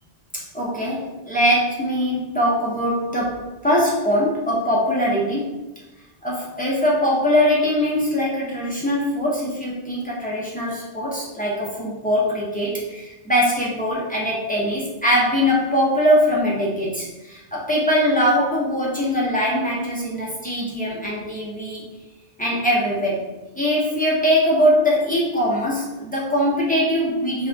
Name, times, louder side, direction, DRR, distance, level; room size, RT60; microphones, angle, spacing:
voice 1, 0.3-5.6 6.2-21.8 22.4-27.5, equal, 15° left, -6 dB, 0.3 m, -22 dB
2.6 x 2.4 x 3.3 m, 1.0 s
omnidirectional pair, 1.2 m